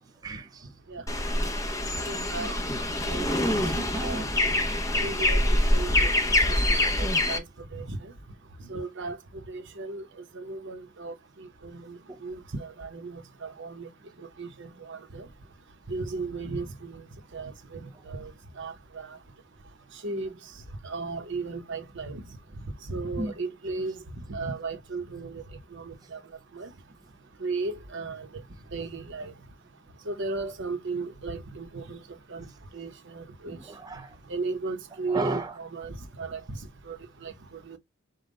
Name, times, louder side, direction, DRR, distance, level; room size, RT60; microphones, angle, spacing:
voice 1, 0.2-0.7 2.4-2.5 3.8-4.2 23.2-23.3 33.5-34.1 35.1-35.5, right 2 dB, 20° right, 0.4 m, -33 dB
sound 1, 1.1-7.4, left 1 dB, 15° left, 0.9 m, -25 dB
voice 2, 2.1-2.5 3.1-3.3 3.6-3.7 4.0-4.3 5.0-6.1 7.0-7.4 7.7-8.1 8.7-9.2 9.5-10.1 10.3-13.9 14.4-15.2 15.9-17.0 17.3-18.3 18.6-19.2 20.0-20.3 20.8-22.2 22.9-23.9 24.3-25.4 25.7-26.2 26.5-26.7 27.4-28.3 28.7-29.3 30.1-32.0 32.3-32.4 32.7-33.6 34.3-36.6 36.9-37.0 37.2-37.3 37.7-37.8, right 3 dB, 65° right, 0.9 m, -35 dB
5.4 x 2.3 x 3.8 m
head